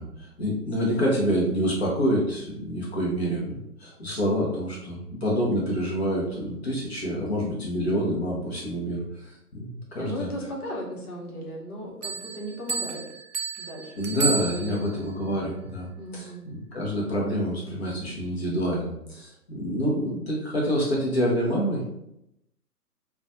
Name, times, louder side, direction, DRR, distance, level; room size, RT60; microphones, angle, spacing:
voice 1, 0.0-10.3 14.0-21.8, equal, 40° left, -4 dB, 0.6 m, -27 dB
voice 2, 10.0-13.0 13.6-14.0 14.4-14.8 16.0-16.4, equal, 65° left, -2 dB, 1.0 m, -36 dB
Bell, 12.0-15.1, right 5 dB, 70° right, 0.6 m, -32 dB
2.4 x 2.1 x 2.6 m, 0.83 s
figure-of-eight pair, 140°, 49 cm